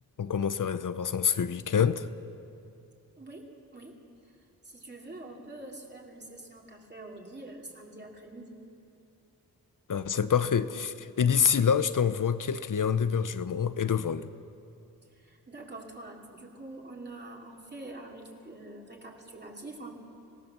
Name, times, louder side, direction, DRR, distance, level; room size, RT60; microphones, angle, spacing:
voice 1, 0.2-2.1 9.9-14.3, left 7 dB, 60° left, 13 dB, 0.7 m, -26 dB
voice 2, 3.2-4.3 4.6-8.6 15.1-19.9, right 2 dB, 30° right, -1 dB, 2.9 m, -45 dB
26.5 x 17.0 x 6.7 m, 2.6 s
wide cardioid pair, 115°, 36 cm